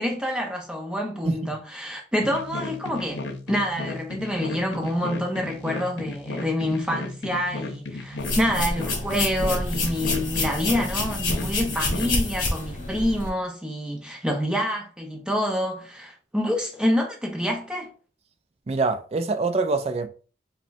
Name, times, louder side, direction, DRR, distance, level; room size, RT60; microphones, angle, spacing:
voice 1, 0.0-17.9, equal, 5° right, 0.8 m, -27 dB
sound 1, 2.2-12.2, left 2 dB, 80° left, 0.7 m, -34 dB
sound 2, 8.2-13.3, left 2 dB, 50° left, 1.3 m, -28 dB
voice 2, 18.7-20.1, right 3 dB, 35° right, 0.4 m, -24 dB
5.0 x 2.3 x 2.6 m
head